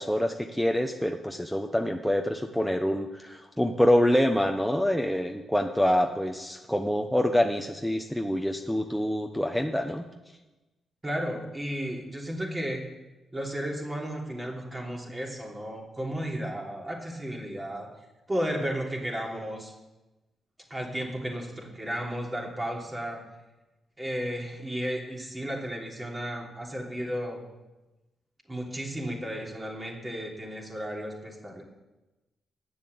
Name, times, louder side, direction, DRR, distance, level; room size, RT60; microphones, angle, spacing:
voice 1, 0.0-10.0, equal, 5° left, 3 dB, 0.8 m, -26 dB
voice 2, 11.0-12.8 13.3-17.9 18.3-19.7 20.7-23.2 24.0-27.4 28.5-31.6, equal, 25° right, -1 dB, 3.1 m, -33 dB
8.8 x 7.1 x 7.9 m, 1.1 s
supercardioid pair, 60°, 0 cm